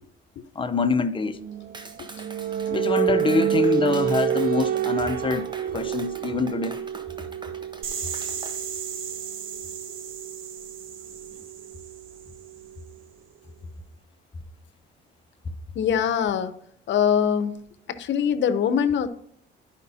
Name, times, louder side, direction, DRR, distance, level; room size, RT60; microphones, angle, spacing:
voice 1, 0.6-1.4 2.7-5.5 5.7-6.8, left 4 dB, 25° left, 0.8 m, -25 dB
sound 1, 1.3-12.9, right 10 dB, 50° right, 0.4 m, -29 dB
Clapping, 1.7-8.6, right 2 dB, 20° right, 1.0 m, -43 dB
sound 2, 7.8-12.6, right 7 dB, 85° right, 1.2 m, -36 dB
voice 2, 15.7-16.5 16.9-17.6 17.9-19.1, left 8 dB, 65° left, 0.8 m, -23 dB
12.5 x 5.1 x 2.8 m
cardioid pair, 90°, 20 cm